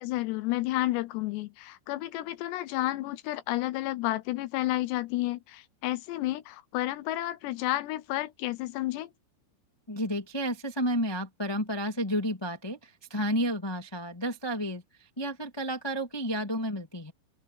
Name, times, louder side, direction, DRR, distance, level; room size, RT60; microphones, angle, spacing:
voice 1, 0.0-9.1, left 16 dB, 80° left, 2.6 m, -31 dB
voice 2, 9.9-14.8 15.2-17.1, equal, 20° left, 0.6 m, -31 dB
open air
omnidirectional pair, 5.5 m